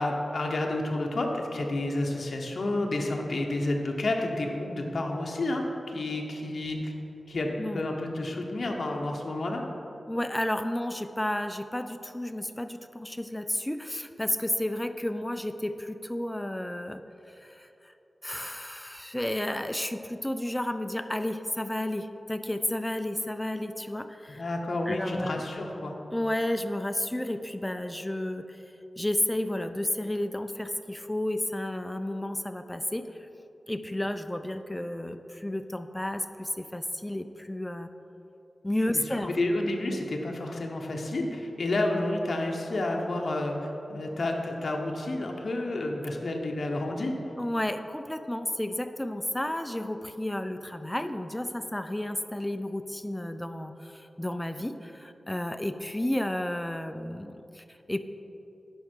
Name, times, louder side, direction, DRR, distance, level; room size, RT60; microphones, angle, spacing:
voice 1, 0.0-6.9 7.3-9.6 24.4-26.0 39.1-47.1, left 2 dB, 60° left, 1 dB, 0.9 m, -30 dB
voice 2, 10.1-17.9 18.2-24.4 24.9-25.4 26.1-28.6 29.0-33.2 33.7-37.9 38.6-39.3 47.4-58.0, left 1 dB, 10° left, 9 dB, 0.4 m, -32 dB
11.0 x 5.2 x 4.5 m, 2.9 s
wide cardioid pair, 95°, 0 cm